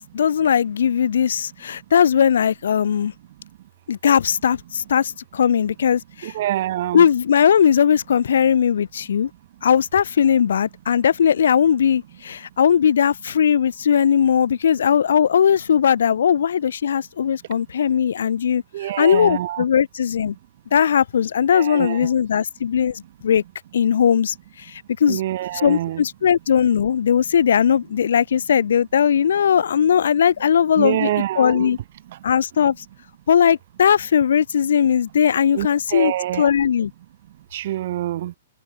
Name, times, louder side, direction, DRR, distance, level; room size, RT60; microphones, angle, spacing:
voice 1, 0.0-3.1 3.9-6.3 6.9-9.3 9.6-20.3 20.7-23.4 23.7-25.2 25.6-31.1 31.4-31.8 32.2-32.8 33.3-36.9, left 8 dB, 75° left, 0.4 m, -19 dB
voice 2, 6.2-7.1 18.7-19.6 21.5-22.1 25.1-26.0 30.8-31.7 35.5-36.5 37.5-38.3, right 13 dB, 45° right, 0.7 m, -25 dB
hypercardioid pair, 170°, 0 cm